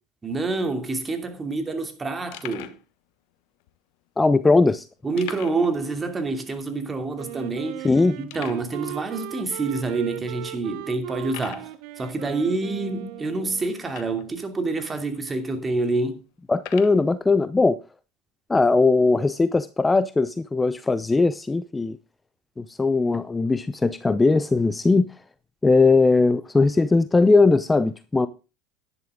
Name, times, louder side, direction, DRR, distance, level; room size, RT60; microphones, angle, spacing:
voice 1, 0.2-2.8 5.0-7.9 8.2-16.2, right 3 dB, 25° right, 2.7 m, -27 dB
sound 1, 2.3-2.8 3.6-3.7 5.2-5.8 6.0-6.1 6.6-6.7 7.3-7.4 8.3-8.7 9.5-9.6 10.2-10.3 11.2-11.7 13.8-14.4 15.1-15.2 16.5-17.0, left 15 dB, 65° left, 1.0 m, -40 dB
voice 2, 4.2-4.9 7.8-8.2 16.5-17.8 18.5-22.0 22.6-25.1 25.6-28.3, left 3 dB, 15° left, 0.7 m, -19 dB
Wind instrument woodwind instrument, 7.1-13.8, right 16 dB, 65° right, 1.0 m, -38 dB
11.0 x 11.0 x 3.7 m
hypercardioid pair, 80°, 0 cm